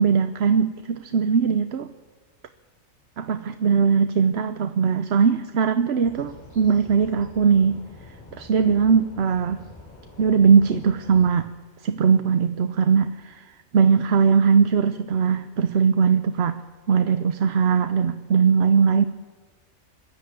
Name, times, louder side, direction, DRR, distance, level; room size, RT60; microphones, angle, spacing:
voice 1, 0.0-1.9 3.2-7.8 8.4-9.6 10.2-11.5 11.8-13.4 13.7-16.6 16.9-19.0, right 6 dB, 55° right, 9 dB, 1.0 m, -20 dB
sound 1, 6.0-11.3, left 3 dB, 30° left, 8.2 m, -46 dB
22.5 x 13.0 x 9.4 m, 1.3 s
omnidirectional pair, 1.4 m